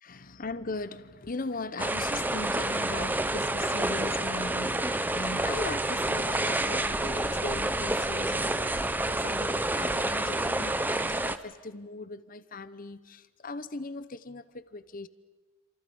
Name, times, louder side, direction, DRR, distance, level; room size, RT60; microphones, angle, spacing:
voice 1, 0.0-15.1, left 3 dB, 40° left, 0.9 m, -39 dB
sound 1, 1.8-11.4, right 2 dB, 10° right, 0.7 m, -29 dB
28.0 x 27.0 x 5.5 m
head